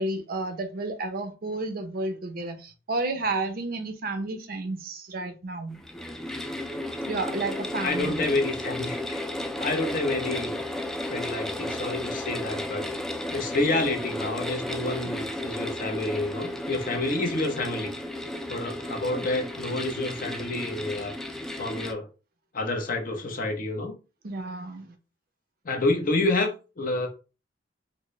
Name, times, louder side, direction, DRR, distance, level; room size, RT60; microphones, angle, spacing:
voice 1, 0.0-5.8 7.1-8.3 24.2-24.9, right 2 dB, 55° right, 0.6 m, -31 dB
sound 1, 5.7-21.9, left 1 dB, 5° left, 0.3 m, -33 dB
voice 2, 7.8-9.3 9.6-10.6 11.1-12.9 13.3-17.9 18.5-21.1 21.6-22.1 22.5-23.9 25.6-27.1, left 2 dB, 50° left, 0.8 m, -28 dB
4.0 x 2.0 x 3.1 m
head